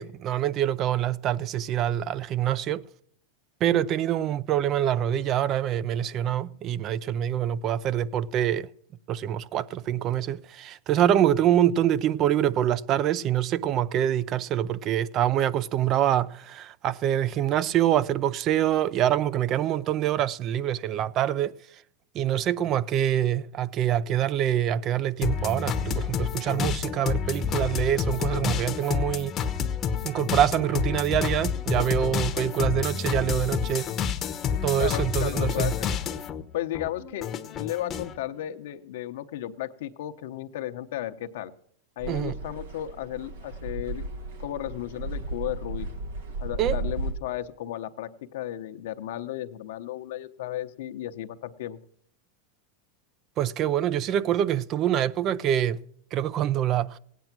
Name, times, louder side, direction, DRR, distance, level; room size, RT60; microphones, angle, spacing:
voice 1, 0.0-2.8 3.6-8.7 9.1-21.5 22.1-29.4 30.0-33.9 34.6-35.7 42.1-42.4 46.6-46.8 53.4-55.8 56.1-57.0, right 11 dB, 35° right, 0.5 m, -25 dB
sound 1, 25.2-36.4 36.7-38.1, left 7 dB, 25° left, 0.9 m, -29 dB
voice 2, 34.8-35.9 36.5-41.5 42.0-44.0 44.4-45.9 46.4-51.8, left 13 dB, 75° left, 0.9 m, -34 dB
sound 2, 42.0-47.1, right 2 dB, 85° right, 2.4 m, -34 dB
17.0 x 9.3 x 6.0 m
supercardioid pair, 135°, 0 cm